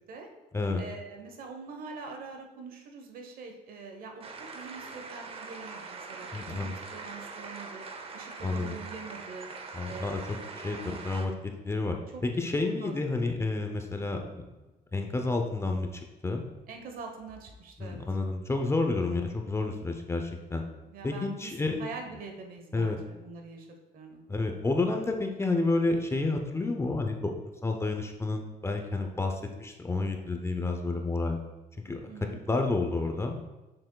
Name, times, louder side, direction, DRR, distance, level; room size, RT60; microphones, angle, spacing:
voice 1, 0.8-7.8 8.1-9.5 9.9-11.0 12.1-12.2 12.8-12.9 16.7-18.1 20.9-24.2 32.1-32.4, right 4 dB, 60° right, 4 dB, 1.1 m, -44 dB
sound 1, 4.2-11.3, right 4 dB, 35° right, 0.7 m, -42 dB
voice 2, 6.3-6.8 8.4-8.8 9.7-10.4 10.6-11.3 11.6-12.0 12.2-14.4 14.9-16.4 17.8-20.6 21.0-21.8 22.7-23.0 24.3-27.3 27.6-31.4 31.8-32.1 32.5-33.4, left 3 dB, 15° left, 3 dB, 0.6 m, -30 dB
6.7 x 6.0 x 2.3 m, 1.1 s
cardioid pair, 110°, 17 cm